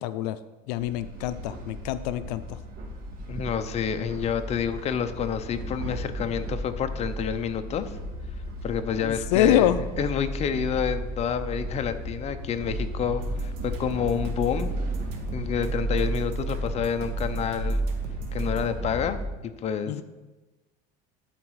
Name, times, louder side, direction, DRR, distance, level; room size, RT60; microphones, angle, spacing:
voice 1, 0.0-0.4 0.7-2.6 9.0-9.8 19.9-20.0, left 12 dB, 90° left, 13 dB, 0.5 m, -25 dB
sound 1, 0.8-19.3, right 1 dB, 45° right, 1.7 m, -33 dB
voice 2, 3.3-8.0 8.6-9.7 10.0-14.7 15.3-17.8 18.3-19.9, left 8 dB, 30° left, 9 dB, 0.6 m, -29 dB
sound 2, 13.2-18.7, right 2 dB, 85° right, 1.5 m, -44 dB
11.5 x 4.1 x 4.7 m, 1.2 s
cardioid pair, 125°, 20 cm